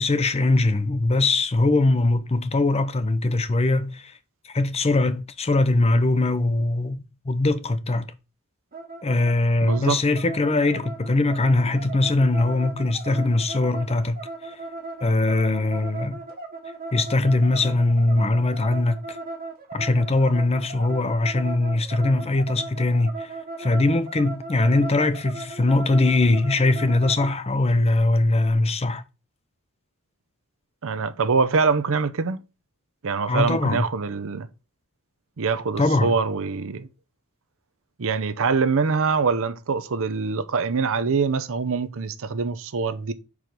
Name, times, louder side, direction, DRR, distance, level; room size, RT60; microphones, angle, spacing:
voice 1, 0.0-4.1 4.5-8.1 9.0-14.2 14.4-14.5 15.0-16.2 16.9-19.0 19.7-23.3 23.6-29.0 33.3-33.9 35.8-36.1, left 2 dB, 30° left, 0.6 m, -21 dB
sound 1, 8.7-27.4, right 3 dB, 40° right, 1.2 m, -37 dB
voice 2, 9.6-10.0 30.8-32.4 33.0-34.5 35.4-36.9 38.0-43.1, right 4 dB, 65° right, 0.6 m, -24 dB
5.3 x 4.8 x 6.0 m
head